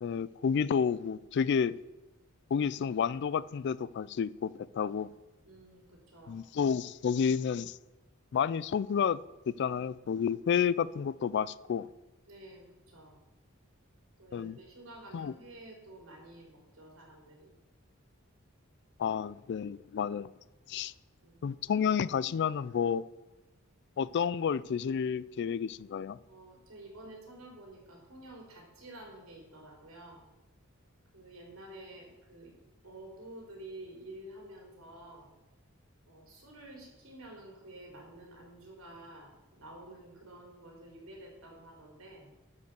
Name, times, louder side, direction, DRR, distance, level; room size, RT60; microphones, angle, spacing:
voice 1, 0.0-1.8 2.5-5.1 6.3-7.8 8.3-9.2 9.5-11.9 14.3-14.6 15.1-15.3 19.0-20.3 20.7-20.9 21.4-23.0 24.0-26.2, left 7 dB, 55° left, 0.3 m, -30 dB
voice 2, 5.4-6.4 12.3-13.2 14.2-17.6 21.2-21.4 26.3-30.2 31.1-32.5 32.8-35.3 36.1-42.3, right 1 dB, 75° right, 3.6 m, -50 dB
11.5 x 5.5 x 6.7 m
head